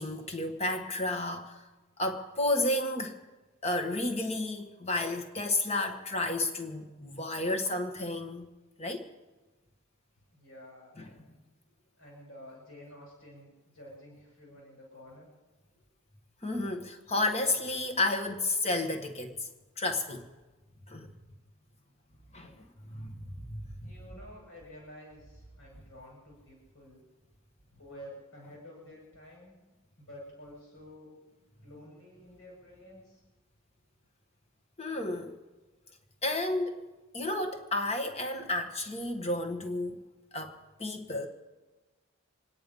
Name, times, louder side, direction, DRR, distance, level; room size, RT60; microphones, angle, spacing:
voice 1, 0.0-1.6 2.0-3.2 3.6-8.5 8.8-9.1 11.0-11.1 16.4-19.4 19.8-20.3 20.9-21.1 22.3-22.5 22.9-23.9 34.8-35.4 36.2-36.8 37.1-40.0 40.3-41.3, left 2 dB, 30° left, 1.5 m, -32 dB
voice 2, 10.3-11.4 12.0-15.3 15.7-15.8 22.4-22.7 23.6-27.1 27.7-29.6 30.0-31.1 31.6-33.2 33.8-33.9, left 1 dB, 75° left, 6.0 m, -51 dB
26.5 x 10.0 x 5.4 m
head